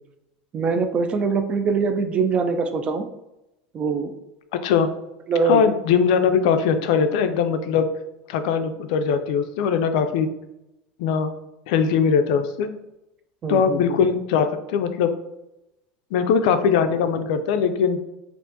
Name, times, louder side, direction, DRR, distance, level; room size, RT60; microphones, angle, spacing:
voice 1, 0.5-3.1 3.7-4.1 5.3-5.6 13.4-14.0, right 4 dB, 30° right, 7 dB, 0.3 m, -23 dB
voice 2, 5.4-7.9 8.3-10.3 11.0-11.3 11.7-12.7 13.5-15.1 16.1-18.0, left 6 dB, 70° left, 9 dB, 0.3 m, -20 dB
3.4 x 2.5 x 2.6 m, 0.90 s
supercardioid pair, 130°, 4 cm